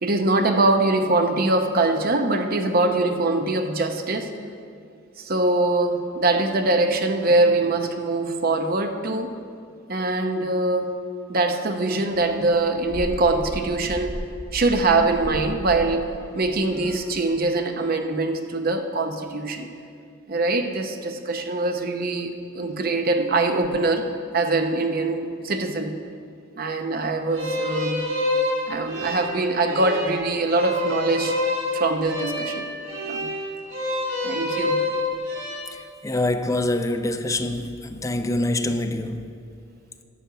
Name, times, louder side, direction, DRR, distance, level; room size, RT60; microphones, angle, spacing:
voice 1, 0.0-4.3 5.2-9.3 9.9-11.0 11.3-14.2 14.5-19.7 20.3-24.1 24.3-26.0 26.6-28.1 28.7-31.4 31.7-32.7 33.1-33.3 34.2-34.8, right 2 dB, 45° right, 0.8 m, -23 dB
sound 1, 12.1-17.3, equal, 35° left, 2.4 m, -36 dB
sound 2, 27.3-35.6, left 2 dB, 70° right, 2.6 m, -27 dB
voice 2, 35.7-39.4, left 1 dB, 15° left, 0.4 m, -25 dB
11.0 x 5.3 x 8.1 m
head